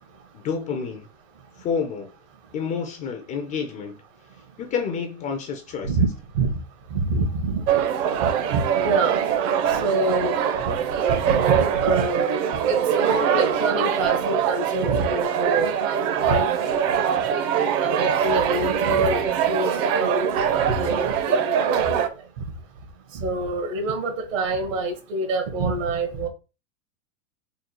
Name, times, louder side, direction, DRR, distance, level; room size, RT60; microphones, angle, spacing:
voice 1, 0.3-1.1 1.6-2.1 2.5-4.0 4.6-5.9, left 6 dB, 20° left, 0.3 m, -29 dB
voice 2, 6.9-7.8 8.2-9.2 9.7-10.3 11.2-12.3 12.7-15.7 16.2-17.0 17.3-17.4 17.7-19.7 20.0-22.1 23.1-26.3, right 3 dB, 70° right, 1.5 m, -26 dB
sound 1, 7.7-22.1, right 8 dB, 40° right, 0.7 m, -23 dB
3.8 x 2.3 x 4.4 m
hypercardioid pair, 130°, 41 cm